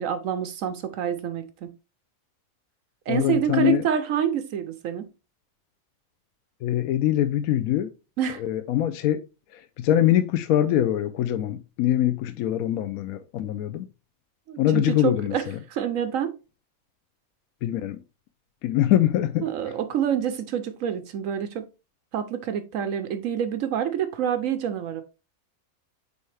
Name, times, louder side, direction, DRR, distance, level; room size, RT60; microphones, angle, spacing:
voice 1, 0.0-1.7 3.1-5.1 8.2-8.4 14.5-15.4 15.7-16.3 19.4-21.7 22.1-25.0, right 9 dB, 70° right, 1.0 m, -27 dB
voice 2, 3.1-3.8 6.6-7.9 8.4-9.2 9.5-13.9 14.6-15.6 17.6-18.0 18.6-19.5, left 12 dB, 85° left, 1.0 m, -23 dB
8.3 x 3.5 x 3.2 m
omnidirectional pair, 1.5 m